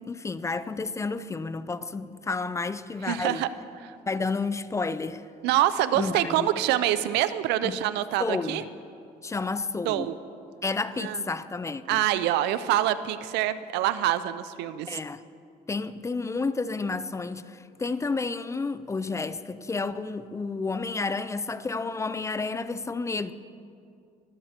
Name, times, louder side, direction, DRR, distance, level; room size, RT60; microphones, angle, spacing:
voice 1, 0.0-3.5 4.1-5.2 5.9-6.5 7.6-7.8 8.2-8.6 9.2-10.1 10.6-12.0 14.9-15.2 15.7-23.3, left 4 dB, 15° left, 0.4 m, -31 dB
voice 2, 3.1-3.5 3.8-3.9 5.4-8.6 9.8-10.1 11.0-11.2 11.9-15.0, right 13 dB, 90° right, 0.6 m, -25 dB
22.5 x 8.1 x 4.4 m
cardioid pair, 110°, 17 cm